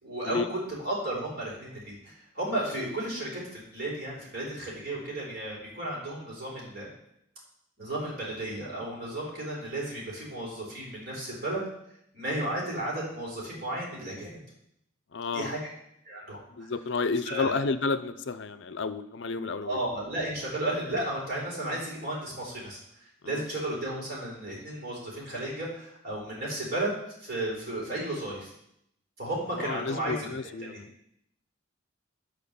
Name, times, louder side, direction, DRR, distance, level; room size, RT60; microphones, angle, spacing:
voice 1, 0.0-6.9 7.8-11.6 12.1-14.4 15.3-15.7 16.1-16.4 17.3-17.6 19.6-22.8 23.2-28.5 29.2-30.3 30.6-30.8, right 1 dB, 50° right, -4 dB, 4.0 m, -33 dB
voice 2, 15.1-15.5 16.5-19.8 23.2-23.5 29.6-30.9, left 4 dB, 60° left, 12 dB, 0.5 m, -31 dB
11.5 x 4.6 x 6.9 m, 0.76 s
head